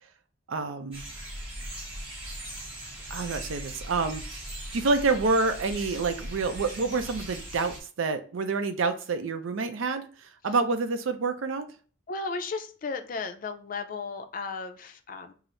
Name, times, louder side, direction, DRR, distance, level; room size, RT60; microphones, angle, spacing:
voice 1, 0.5-1.0 3.1-4.2 4.7-10.1 10.4-11.7, right 4 dB, 90° right, 8 dB, 0.5 m, -27 dB
sound 1, 0.9-7.8, right 1 dB, 25° right, 1.2 m, -39 dB
voice 2, 12.1-15.3, left 4 dB, 45° left, 6 dB, 0.4 m, -35 dB
3.8 x 2.0 x 4.3 m, 0.39 s
head